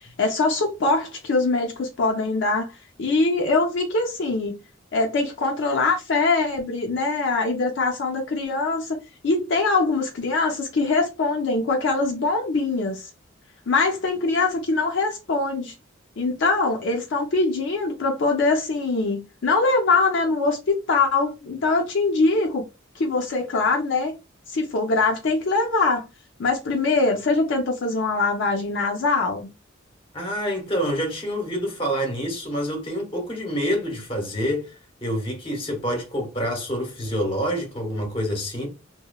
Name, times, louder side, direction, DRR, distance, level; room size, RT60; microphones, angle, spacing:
voice 1, 0.2-2.7 3.0-4.6 4.9-9.0 9.2-13.1 13.7-15.7 16.2-22.6 22.9-24.1 24.5-26.0 26.4-29.5, left 3 dB, 60° left, 0.5 m, -23 dB
voice 2, 30.1-34.7 35.0-38.7, equal, 25° left, 0.9 m, -27 dB
2.9 x 2.0 x 2.2 m
head